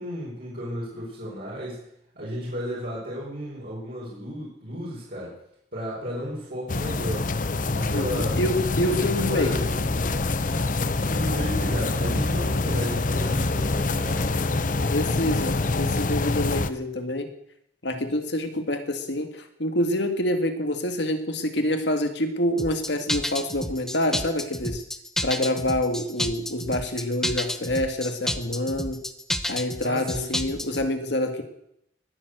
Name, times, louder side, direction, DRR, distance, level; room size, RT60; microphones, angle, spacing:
voice 1, 0.0-1.8 2.1-5.4 5.7-7.3 7.7-8.4 8.8-9.9 11.0-14.3 29.8-30.4, equal, 55° right, -6 dB, 4.7 m, -33 dB
sound 1, 6.7-16.7, left 3 dB, 45° left, 0.7 m, -25 dB
voice 2, 7.9-9.5 14.9-17.3 17.8-24.8 25.2-29.0 29.5-31.4, left 1 dB, 65° left, 6 dB, 2.0 m, -27 dB
sound 2, 22.6-30.9, left 1 dB, 5° left, 0.7 m, -30 dB
20.5 x 7.4 x 7.9 m, 0.77 s
head